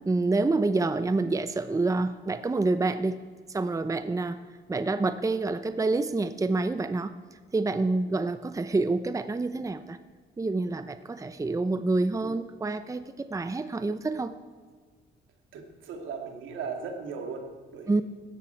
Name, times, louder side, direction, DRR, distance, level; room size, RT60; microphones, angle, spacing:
voice 1, 0.1-3.2 3.5-4.4 4.7-7.1 7.5-10.0 10.4-14.3 17.9-18.0, right 3 dB, 15° right, 11 dB, 0.7 m, -27 dB
voice 2, 15.5-18.0, right 5 dB, 80° right, 3 dB, 2.5 m, -38 dB
17.0 x 13.5 x 4.6 m, 1.5 s
cardioid pair, 90°, 20 cm